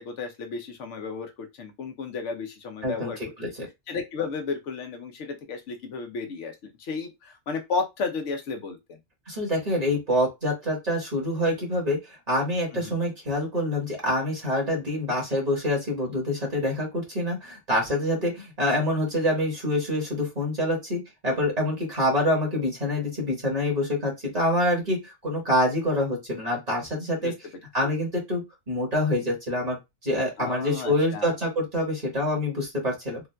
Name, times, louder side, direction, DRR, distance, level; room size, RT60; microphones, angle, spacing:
voice 1, 0.0-3.2 3.9-9.0 12.7-13.0 27.2-27.3 27.8-27.9 30.4-31.3, left 4 dB, 85° left, 1.1 m, -33 dB
voice 2, 2.8-3.7 9.3-27.3 27.7-29.8 30.0-33.2, left 1 dB, 35° right, 1.5 m, -26 dB
3.6 x 2.5 x 2.2 m
omnidirectional pair, 1.2 m